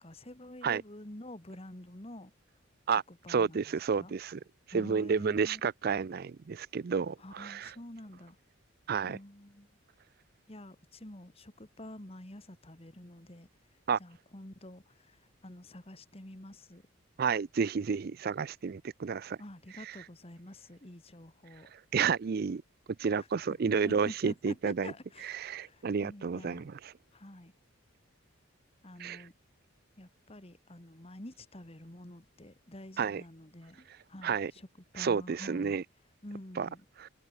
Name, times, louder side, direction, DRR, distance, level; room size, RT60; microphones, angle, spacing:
voice 1, 0.0-2.3 3.1-3.7 4.0-4.1 4.7-5.6 7.2-8.4 9.1-9.7 10.5-13.5 14.0-16.8 19.4-21.7 23.1-26.7 27.1-27.5 28.8-29.3 30.0-34.7 34.9-35.8 36.2-36.9, left 1 dB, 30° left, 2.0 m, -48 dB
voice 2, 3.3-4.4 4.7-7.7 8.9-9.2 13.9-14.0 17.2-19.4 19.8-19.9 21.7-22.6 23.0-24.9 25.4-26.8 29.0-29.2 33.0-33.2 34.2-34.5 35.0-35.8 36.6-36.7 37.0-37.1, right 6 dB, 45° right, 0.4 m, -31 dB
head